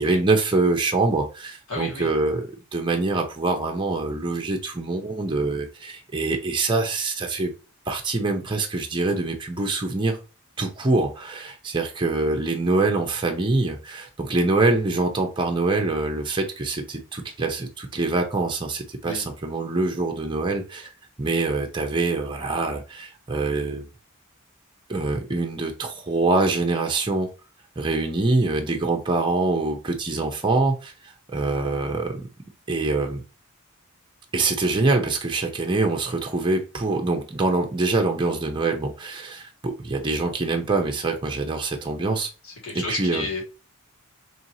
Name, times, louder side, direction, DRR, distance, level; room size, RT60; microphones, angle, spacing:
voice 1, 0.0-7.5 7.9-10.2 10.6-20.9 21.2-23.9 24.9-27.3 27.8-32.2 32.7-33.2 34.3-42.3 42.7-43.3, right 3 dB, 20° right, 0.7 m, -24 dB
voice 2, 1.7-2.1 19.0-19.2 42.4-43.4, left 3 dB, 70° left, 1.9 m, -32 dB
4.4 x 3.1 x 2.7 m
head